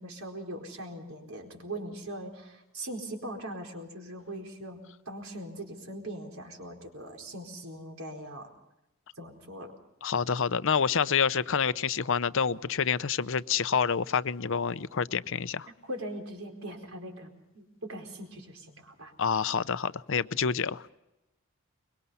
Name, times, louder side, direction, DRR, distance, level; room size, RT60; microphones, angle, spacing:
voice 1, 0.0-4.8 5.1-8.5 9.2-9.7 15.8-19.1, right 1 dB, 75° right, 2 dB, 4.5 m, -41 dB
voice 2, 10.0-15.7 19.2-20.9, left 6 dB, 65° left, 15 dB, 0.7 m, -28 dB
24.0 x 22.5 x 5.6 m, 0.93 s
head